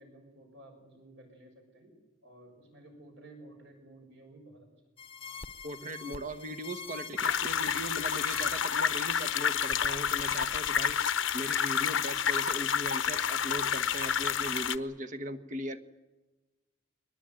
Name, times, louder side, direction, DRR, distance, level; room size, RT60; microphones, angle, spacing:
voice 1, 0.0-4.7, right 1 dB, 65° right, 3 dB, 6.8 m, -54 dB
sound 1, 5.0-10.9, left 5 dB, 30° left, 0.9 m, -46 dB
voice 2, 5.6-15.8, right 1 dB, 40° right, 8 dB, 1.3 m, -39 dB
sound 2, 7.2-14.8, left 8 dB, 80° left, 0.9 m, -29 dB
22.5 x 19.5 x 9.2 m, 1.2 s
head